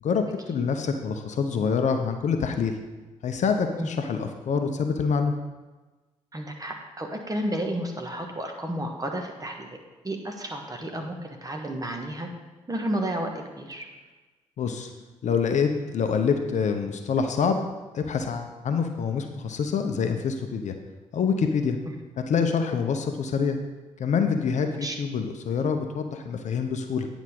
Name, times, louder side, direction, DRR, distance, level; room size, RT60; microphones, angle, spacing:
voice 1, 0.0-2.8 3.2-5.3 14.6-14.9 15.2-17.6 17.9-20.8 21.1-21.8 22.3-23.6 24.0-27.1, left 6 dB, 50° left, 6 dB, 0.8 m, -26 dB
voice 2, 6.3-12.3 12.7-13.9 21.8-21.9 24.8-24.9, right 1 dB, 25° right, 2 dB, 1.5 m, -32 dB
9.4 x 5.0 x 5.2 m, 1.2 s
figure-of-eight pair, 40°, 16 cm